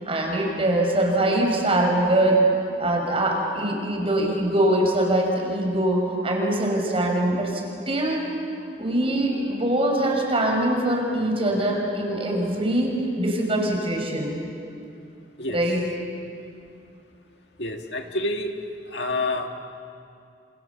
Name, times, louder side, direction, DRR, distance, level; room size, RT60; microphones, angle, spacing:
voice 1, 0.0-2.4 2.8-8.2 8.8-14.4 15.5-15.8, right 1 dB, 35° right, 1 dB, 5.9 m, -23 dB
voice 2, 17.6-18.5 18.9-19.5, left 2 dB, 75° left, 3 dB, 2.1 m, -27 dB
28.5 x 28.0 x 7.2 m, 2.5 s
head